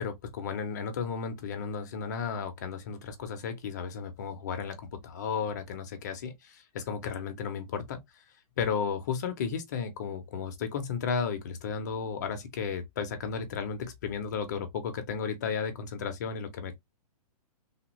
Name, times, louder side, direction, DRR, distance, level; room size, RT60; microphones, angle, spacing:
voice 1, 0.0-8.0 8.6-16.7, left 6 dB, 30° left, 0.5 m, -34 dB
3.4 x 2.2 x 2.9 m
hypercardioid pair, 170°, 20 cm